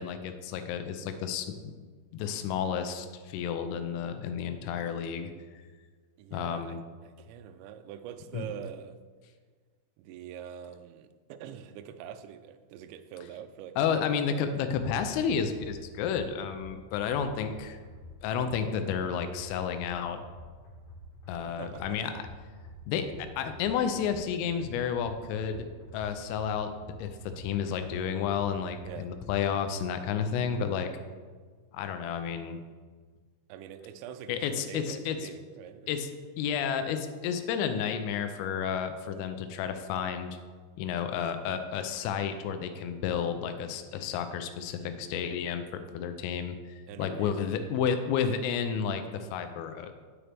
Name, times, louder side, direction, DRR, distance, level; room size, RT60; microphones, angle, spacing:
voice 1, 0.0-1.7 2.1-5.3 6.3-6.8 8.3-8.5 13.8-17.8 18.2-20.2 21.3-22.1 22.9-23.1 23.4-25.7 25.9-30.9 31.7-32.6 34.3-35.3 35.9-36.1 36.4-40.3 40.8-49.9, left 7 dB, 85° left, 8 dB, 3.2 m, -31 dB
voice 2, 6.2-9.0 10.0-13.8 21.5-22.0 28.8-29.1 33.5-35.9 44.8-45.2 46.9-47.4, right 9 dB, 85° right, 8 dB, 2.6 m, -44 dB
sound 1, 15.0-29.7, left 1 dB, 55° left, 5.1 m, -48 dB
10.0 x 8.9 x 3.4 m, 1.5 s
omnidirectional pair, 5.9 m